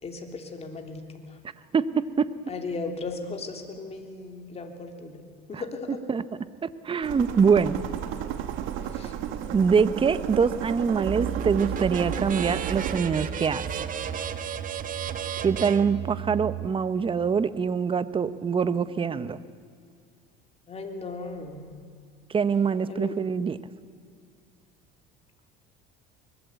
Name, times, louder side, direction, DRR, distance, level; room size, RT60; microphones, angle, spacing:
voice 1, 0.0-1.0 2.5-5.2 5.5-6.0 8.9-9.1 20.7-21.7 22.9-23.1, left 3 dB, 30° left, 4 dB, 3.4 m, -36 dB
voice 2, 1.7-2.3 5.5-5.6 6.1-6.2 6.6-7.8 9.5-13.9 15.4-19.4 22.3-23.6, right 6 dB, 25° right, 14 dB, 1.0 m, -24 dB
sound 1, 7.0-13.0, right 10 dB, 70° right, 1.9 m, -33 dB
sound 2, 11.1-16.7, right 8 dB, 40° right, 1.4 m, -33 dB
24.0 x 21.0 x 8.3 m, 2.2 s
supercardioid pair, 110°, 21 cm